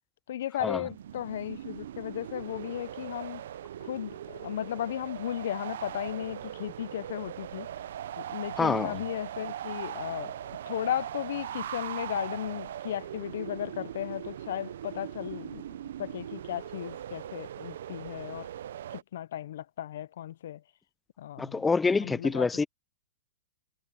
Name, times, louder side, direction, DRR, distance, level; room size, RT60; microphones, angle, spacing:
voice 1, 0.3-3.4 3.8-7.7 8.2-15.6 16.0-18.5 18.9-20.6 21.2-22.5, left 11 dB, 70° left, 0.5 m, -35 dB
sound 1, 0.7-19.0, right 10 dB, 75° right, 0.5 m, -40 dB
voice 2, 8.6-9.0 21.4-22.6, left 4 dB, 10° left, 0.3 m, -26 dB
hypercardioid pair, 140°, 0 cm